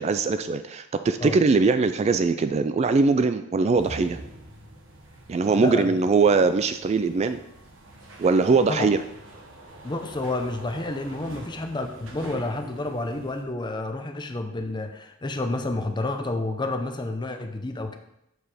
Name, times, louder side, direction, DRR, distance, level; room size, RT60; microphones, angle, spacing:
voice 1, 0.0-4.2 5.3-7.4 8.2-9.0, right 4 dB, 35° right, 10 dB, 0.3 m, -21 dB
sound 1, 3.8-13.4, right 1 dB, 65° right, 1.3 m, -45 dB
voice 2, 5.5-6.0 8.7-8.9 9.8-18.0, left 2 dB, 20° left, 6 dB, 0.7 m, -30 dB
7.9 x 4.7 x 5.0 m, 0.82 s
head